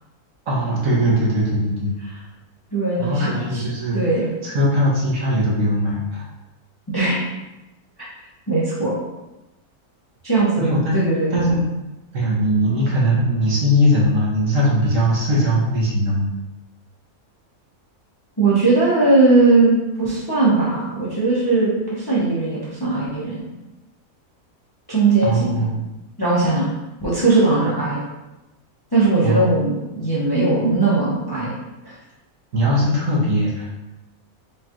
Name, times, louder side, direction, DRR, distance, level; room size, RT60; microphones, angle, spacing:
voice 1, 0.5-1.9 3.0-4.0 4.4-6.2 10.6-11.0 11.3-11.6 12.1-16.3 25.2-25.8 29.2-29.5 32.5-33.6, equal, 60° right, -5 dB, 1.2 m, -20 dB
voice 2, 2.7-3.6 3.9-4.3 6.9-7.2 8.5-8.9 10.2-11.3 18.4-23.4 24.9-25.7 26.2-26.7 27.0-28.0 28.9-31.5 31.8-31.9, right 3 dB, 25° left, -8 dB, 0.6 m, -19 dB
4.9 x 2.4 x 2.9 m, 1.0 s
omnidirectional pair, 1.6 m